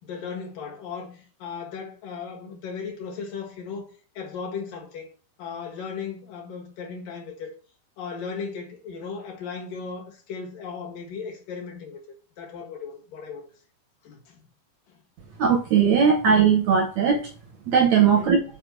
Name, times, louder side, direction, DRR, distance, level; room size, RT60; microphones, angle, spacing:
voice 1, 0.0-3.9 4.1-5.1 5.4-7.5 8.0-12.0 12.4-13.5 14.0-14.5 14.9-15.0 18.0-18.4, left 5 dB, 65° left, 3.2 m, -36 dB
voice 2, 15.4-17.3 17.7-18.4, right 7 dB, 75° right, 1.6 m, -19 dB
6.6 x 4.5 x 6.3 m
omnidirectional pair, 4.2 m